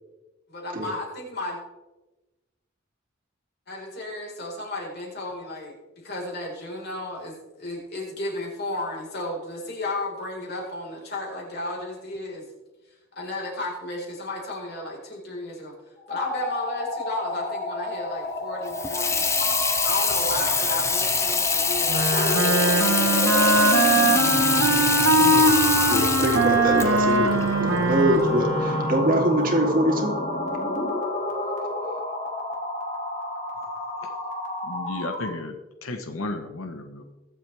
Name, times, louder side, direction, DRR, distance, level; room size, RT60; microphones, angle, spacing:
voice 1, 0.5-1.6 3.7-5.7 6.0-12.4 13.2-15.7 16.1-19.3 19.8-24.1, left 2 dB, 50° left, -2 dB, 4.5 m, -33 dB
sound 1, 16.0-35.4, left 1 dB, 35° left, 2.2 m, -30 dB
Water tap faucet / Sink (filling or washing), 18.7-28.2, left 5 dB, 15° left, 0.7 m, -25 dB
Wind instrument woodwind instrument, 21.9-29.2, right 2 dB, 85° right, 1.5 m, -22 dB
voice 2, 24.5-25.5 25.9-30.2, right 1 dB, 40° right, 0 dB, 2.3 m, -24 dB
voice 3, 34.6-35.6 35.8-37.1, left 2 dB, 80° left, 6 dB, 1.1 m, -33 dB
22.5 x 7.7 x 3.4 m, 1.1 s
head